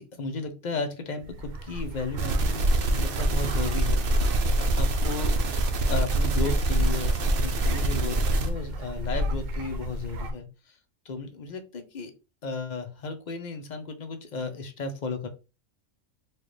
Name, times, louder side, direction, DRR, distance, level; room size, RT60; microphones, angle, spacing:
voice 1, 0.0-5.3 5.9-10.8 11.0-12.1 12.4-15.3, left 4 dB, 45° left, 6 dB, 0.6 m, -34 dB
sound 1, 1.2-10.3, equal, 80° right, 1.1 m, -31 dB
sound 2, 2.2-8.5, right 2 dB, 55° right, 0.7 m, -25 dB
4.4 x 2.3 x 3.1 m, 0.30 s
omnidirectional pair, 1.4 m